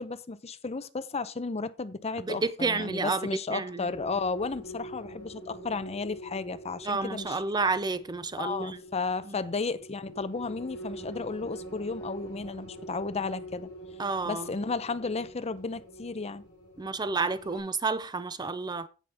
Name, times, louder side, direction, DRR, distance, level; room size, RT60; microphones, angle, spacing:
voice 1, 0.0-7.4 8.4-13.7 14.3-16.4, left 4 dB, 30° left, 0.6 m, -33 dB
voice 2, 2.2-3.9 6.8-8.8 9.3-9.4 14.0-14.5 16.8-18.9, right 3 dB, 20° right, 0.5 m, -30 dB
sound 1, 3.9-17.6, equal, 60° left, 7.1 m, -45 dB
16.5 x 5.8 x 3.5 m
head